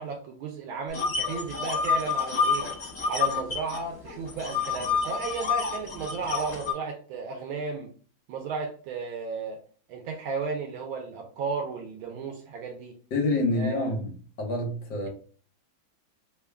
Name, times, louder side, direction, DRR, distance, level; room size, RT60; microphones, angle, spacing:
voice 1, 0.0-2.7 3.1-7.9 8.3-9.6 9.9-13.0 13.5-13.8, right 4 dB, 80° right, 1.4 m, -34 dB
sound 1, 0.9-3.8 4.1-6.7, left 5 dB, 35° left, 1.5 m, -28 dB
voice 2, 13.1-14.1 14.4-15.1, left 2 dB, 65° left, 1.6 m, -27 dB
3.7 x 2.2 x 3.4 m
omnidirectional pair, 2.2 m